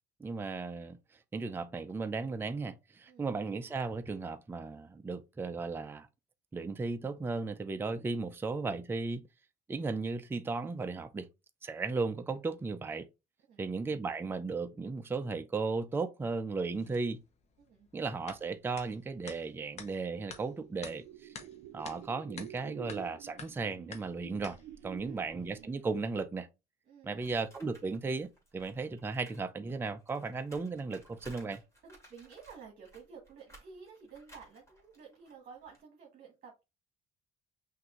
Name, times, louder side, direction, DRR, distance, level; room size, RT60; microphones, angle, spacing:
voice 1, 0.2-1.0 1.3-6.1 6.5-9.3 9.7-11.3 11.6-13.1 13.6-17.2 17.9-21.3 21.7-24.6 24.8-26.5 27.0-31.6, right 4 dB, 10° right, 0.4 m, -35 dB
sound 1, 16.6-25.6, left 5 dB, 35° left, 0.9 m, -51 dB
voice 2, 17.6-17.9 24.9-25.2 26.9-27.3 31.8-36.6, right 6 dB, 50° right, 1.3 m, -52 dB
sound 2, 19.7-26.2, right 13 dB, 80° right, 0.5 m, -50 dB
sound 3, 27.2-29.4 29.7-35.8, right 2 dB, 15° left, 2.0 m, -58 dB
5.8 x 2.6 x 3.0 m
cardioid pair, 125°, 18 cm